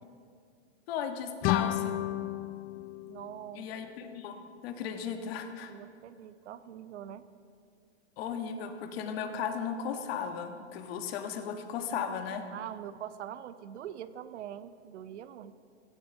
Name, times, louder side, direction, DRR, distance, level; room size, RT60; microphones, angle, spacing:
voice 1, 0.9-2.0 3.5-4.4 4.6-5.8 8.2-12.5, left 7 dB, 60° left, 6 dB, 1.6 m, -36 dB
sound 1, 1.4-4.2, left 13 dB, 30° left, 0.4 m, -33 dB
voice 2, 3.1-3.7 5.7-7.2 12.5-15.5, right 10 dB, 80° right, 13 dB, 0.8 m, -43 dB
16.0 x 15.5 x 3.9 m, 2.3 s
hypercardioid pair, 130°, 34 cm